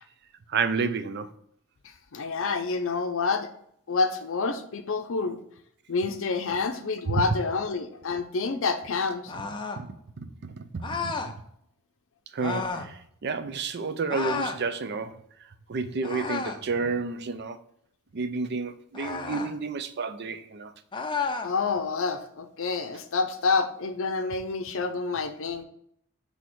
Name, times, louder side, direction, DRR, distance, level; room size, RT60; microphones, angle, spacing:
voice 1, 0.5-1.3 7.1-7.2 9.8-11.1 12.3-15.1 15.7-17.6 18.1-20.7, right 4 dB, 50° right, 0.5 m, -30 dB
voice 2, 2.1-3.5 3.9-5.4 5.9-9.3 21.4-25.6, left 4 dB, 65° left, 0.6 m, -28 dB
sound 1, 9.3-9.9 10.8-11.3 12.4-12.9 14.1-14.6 16.0-16.7 18.9-19.5 20.9-21.5, left 4 dB, 20° left, 0.5 m, -32 dB
6.3 x 3.5 x 4.5 m
head